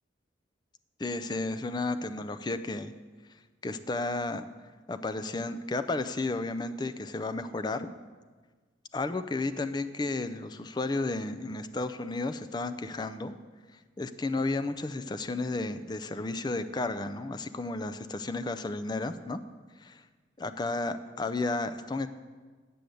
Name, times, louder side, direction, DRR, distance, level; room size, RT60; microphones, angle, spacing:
voice 1, 1.0-2.9 3.6-4.5 4.9-7.9 8.9-13.4 14.0-19.4 19.8-20.0 20.4-22.1, left 2 dB, 20° left, 10 dB, 0.4 m, -32 dB
8.4 x 6.6 x 7.7 m, 1.4 s
head